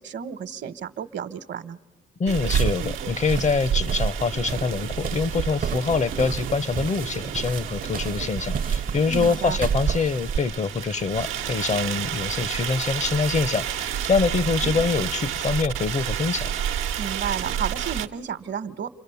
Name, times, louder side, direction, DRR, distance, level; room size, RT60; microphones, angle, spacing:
voice 1, 0.0-1.8 9.0-9.6 17.0-18.9, right 7 dB, 65° right, 13 dB, 1.1 m, -32 dB
voice 2, 2.2-16.5, left 4 dB, 35° left, 18 dB, 0.7 m, -25 dB
sound 1, 2.3-10.4, right 7 dB, 45° right, 0.7 m, -30 dB
sound 2, 2.3-18.1, right 9 dB, 90° right, 1.0 m, -30 dB
29.5 x 24.0 x 6.9 m, 1.2 s
cardioid pair, 90°, 20 cm